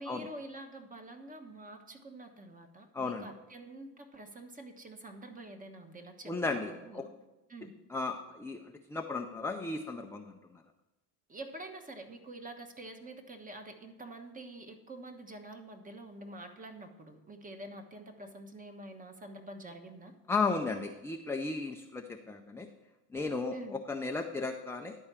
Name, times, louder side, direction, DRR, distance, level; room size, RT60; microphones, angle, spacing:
voice 1, 0.0-7.1 7.5-7.7 11.3-20.1 23.5-23.8, right 2 dB, 20° right, 6 dB, 1.2 m, -47 dB
voice 2, 2.9-3.3 6.3-7.0 7.9-8.6 8.9-10.3 20.3-22.7 23.1-25.0, left 3 dB, 5° left, 3 dB, 0.4 m, -34 dB
11.0 x 4.5 x 7.3 m, 1.0 s
supercardioid pair, 105°, 36 cm